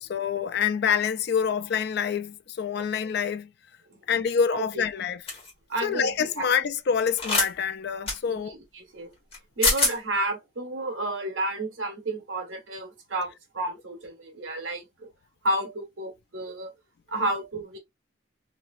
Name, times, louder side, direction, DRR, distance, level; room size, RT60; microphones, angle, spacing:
voice 1, 0.0-3.5 4.1-5.2 5.8-8.5, left 7 dB, 55° left, 0.3 m, -26 dB
sound 1, 5.3-5.5 7.2-7.5 8.1-8.2 9.3-9.4 9.6-9.9, left 3 dB, 30° left, 1.7 m, -23 dB
voice 2, 5.7-6.5 8.3-9.1 9.6-15.1 15.4-16.7 17.1-17.8, right 1 dB, 75° right, 1.3 m, -31 dB
3.1 x 2.8 x 2.4 m
head